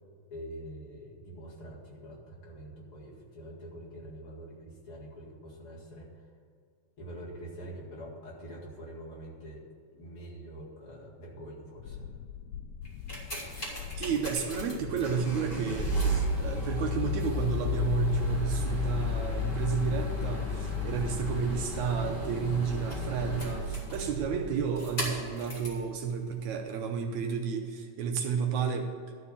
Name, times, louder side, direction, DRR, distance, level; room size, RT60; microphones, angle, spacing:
voice 1, 0.3-6.1 7.0-9.7 9.9-12.1, right 1 dB, 45° left, -5 dB, 2.8 m, -45 dB
sound 1, 11.8-20.5, left 8 dB, 80° left, 1.6 m, -43 dB
sound 2, 12.8-25.8 26.6-26.7, left 2 dB, 15° left, 2.5 m, -33 dB
voice 2, 14.0-28.9, right 6 dB, 75° right, 3 dB, 2.1 m, -31 dB
12.0 x 4.7 x 8.3 m, 2.1 s
omnidirectional pair, 3.5 m